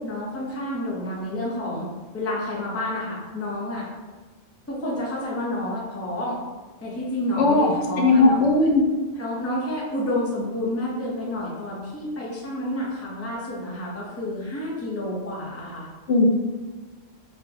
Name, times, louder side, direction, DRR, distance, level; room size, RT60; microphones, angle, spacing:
voice 1, 0.0-3.8 4.7-6.4 6.8-8.4 9.2-15.9, left 1 dB, 15° left, -5 dB, 0.6 m, -29 dB
voice 2, 7.4-8.8 16.1-16.3, left 2 dB, 80° left, 0 dB, 0.8 m, -18 dB
4.4 x 2.0 x 2.7 m, 1.3 s
omnidirectional pair, 1.1 m